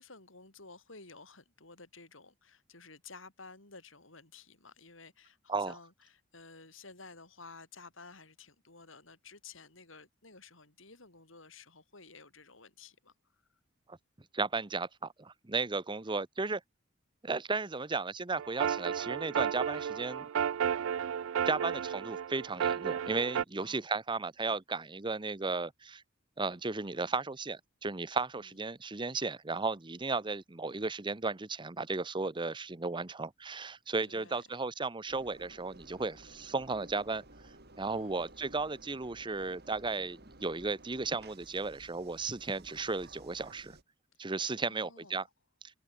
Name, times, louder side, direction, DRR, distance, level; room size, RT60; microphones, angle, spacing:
voice 1, 0.0-13.1 23.6-23.8 28.4-28.6 34.1-34.4 37.9-38.3 44.7-45.3, left 4 dB, 70° left, 7.4 m, -53 dB
voice 2, 14.3-16.6 17.2-20.3 21.4-26.0 26.4-37.2 37.8-43.8 44.2-45.3, right 3 dB, 25° right, 0.9 m, -35 dB
sound 1, 18.4-23.4, right 8 dB, 75° right, 0.4 m, -33 dB
Engine, 35.1-43.8, right 2 dB, 55° right, 6.2 m, -55 dB
head